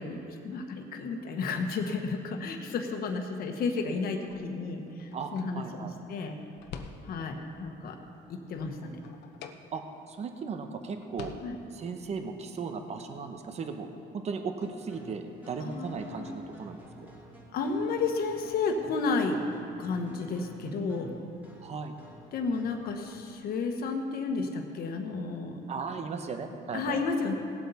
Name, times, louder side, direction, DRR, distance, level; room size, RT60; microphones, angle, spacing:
voice 1, 0.0-6.3 7.0-8.0 8.3-9.0 11.4-11.6 15.6-16.4 17.5-19.4 19.8-21.1 22.3-25.6 26.7-27.3, left 4 dB, 60° left, 4 dB, 1.3 m, -32 dB
sound 1, 4.2-7.5 7.9-10.2 10.5-10.6 10.9-12.0, left 6 dB, 80° left, 0.9 m, -48 dB
voice 2, 5.1-5.9 9.7-9.8 10.1-11.3 11.7-13.9 14.1-17.1 21.6-22.0 25.7-27.0, right 5 dB, 40° right, 6 dB, 0.9 m, -36 dB
sound 2, 14.6-23.3, right 1 dB, 10° right, 2.9 m, -52 dB
18.5 x 7.9 x 4.2 m, 2.7 s
cardioid pair, 110°, 17 cm